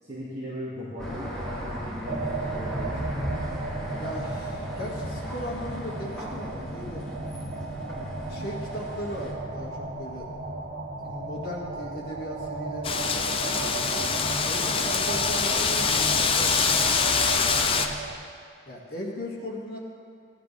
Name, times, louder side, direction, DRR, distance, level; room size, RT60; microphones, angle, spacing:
voice 1, 0.0-3.0, equal, 30° right, -10 dB, 2.2 m, -37 dB
sound 1, 1.0-9.3, equal, 5° left, 2.5 m, -36 dB
sound 2, 2.1-18.1, right 3 dB, 70° right, 1.2 m, -35 dB
voice 2, 4.0-7.0 7.7-10.3 11.0-14.1 14.4-17.9 18.6-19.8, left 1 dB, 50° left, -3 dB, 2.0 m, -38 dB
Wind, 12.8-17.9, left 5 dB, 30° left, 0.5 m, -24 dB
17.0 x 9.7 x 3.4 m, 2.1 s
head